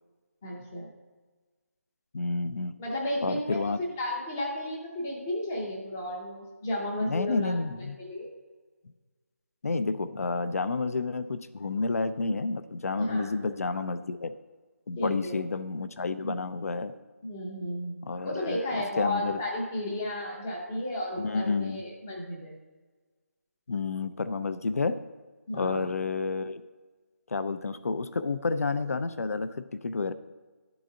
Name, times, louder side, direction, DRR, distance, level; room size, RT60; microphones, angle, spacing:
voice 1, 0.4-0.9 2.8-3.6 4.0-8.3 13.0-13.3 15.0-15.4 16.2-16.3 17.2-22.6 25.5-25.9, left 1 dB, 10° left, -2 dB, 0.5 m, -33 dB
voice 2, 2.1-2.7 3.2-3.8 7.0-8.0 9.6-14.3 14.9-16.9 18.0-19.4 21.2-21.8 23.7-25.0 25.5-26.6 27.3-30.1, left 3 dB, 70° left, 12 dB, 0.4 m, -30 dB
11.0 x 3.9 x 3.8 m, 1.3 s
figure-of-eight pair, 175°, 8 cm